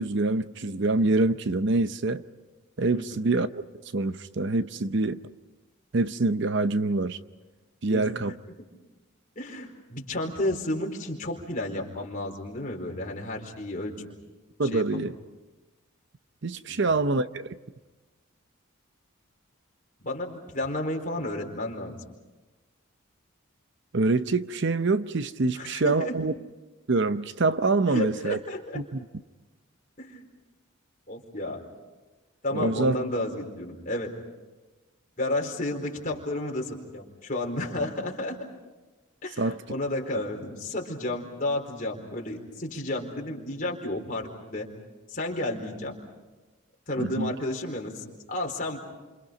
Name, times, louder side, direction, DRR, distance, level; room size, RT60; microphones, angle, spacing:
voice 1, 0.0-2.2 2.8-3.5 3.9-5.2 5.9-7.2 7.8-8.3 14.6-15.1 16.4-17.5 23.9-26.3 26.9-28.4 28.7-29.0 32.5-33.0 39.4-39.6 47.0-47.3, right 3 dB, 55° right, 0.7 m, -25 dB
voice 2, 9.4-14.1 14.6-15.0 16.7-16.9 20.0-22.0 25.5-26.1 27.9-28.8 30.0-30.3 31.1-31.6 32.4-34.1 35.2-38.4 39.2-44.7 45.1-46.0 46.9-48.8, left 1 dB, 40° left, 4.3 m, -32 dB
29.5 x 27.5 x 5.2 m
head